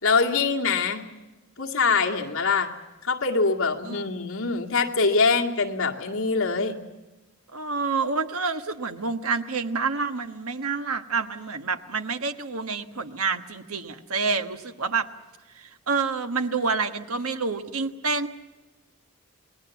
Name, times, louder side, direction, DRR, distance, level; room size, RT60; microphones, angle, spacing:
voice 1, 0.0-1.1 1.6-2.7 3.0-6.8, left 4 dB, 70° left, 1 dB, 2.1 m, -24 dB
voice 2, 7.5-15.1 15.6-18.3, right 4 dB, 85° right, 7 dB, 1.4 m, -28 dB
28.0 x 20.0 x 7.1 m, 1.1 s
head